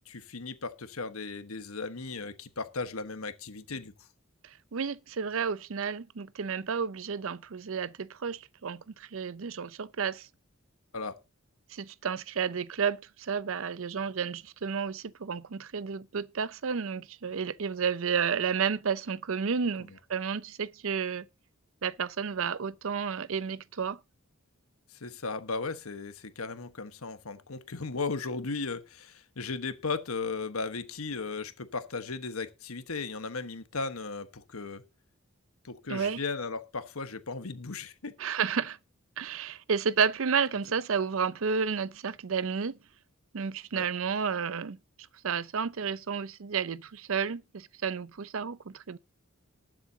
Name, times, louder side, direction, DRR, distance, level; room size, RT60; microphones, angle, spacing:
voice 1, 0.1-3.9 10.9-11.2 19.8-20.0 24.9-34.8 35.6-38.1 43.7-43.9, left 4 dB, 85° left, 1.3 m, -36 dB
voice 2, 4.7-10.3 11.7-21.3 21.8-24.0 35.9-36.2 38.2-38.8 39.2-42.7 43.3-44.8 45.2-49.0, right 6 dB, 65° right, 0.6 m, -31 dB
19.5 x 7.6 x 2.8 m
head